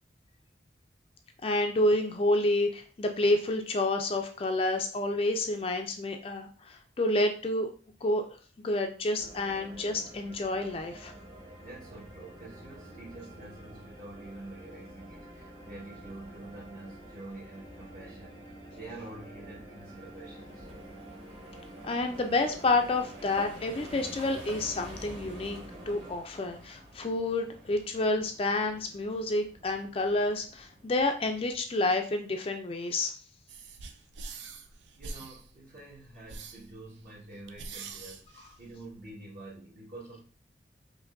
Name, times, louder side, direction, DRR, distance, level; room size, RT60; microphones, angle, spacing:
voice 1, 1.4-7.7 8.0-8.3 8.6-11.1 21.8-25.6 25.9-33.1, left 2 dB, 30° left, 5 dB, 0.4 m, -29 dB
sound 1, 9.2-26.1, right 1 dB, 75° right, 1.9 m, -48 dB
voice 2, 11.6-20.7 35.0-40.3, right 2 dB, 50° right, -7 dB, 1.6 m, -47 dB
sound 2, 19.8-31.7, equal, 30° right, 1.3 m, -50 dB
sound 3, 33.5-39.1, right 4 dB, 90° right, 0.5 m, -45 dB
5.0 x 2.6 x 2.5 m, 0.38 s
head